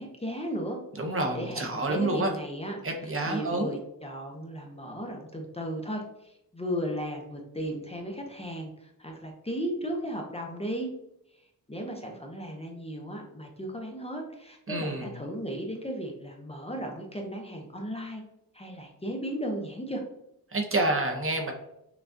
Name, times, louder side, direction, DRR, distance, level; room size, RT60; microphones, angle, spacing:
voice 1, 0.0-0.8 1.3-2.8 3.2-10.9 11.3-18.2 18.5-20.0, equal, 15° left, 1 dB, 0.6 m, -35 dB
voice 2, 1.0-2.3 2.8-3.8 14.7-15.1 20.5-21.5, right 2 dB, 35° right, 3 dB, 0.7 m, -28 dB
5.9 x 2.3 x 2.6 m, 0.82 s
wide cardioid pair, 115°, 36 cm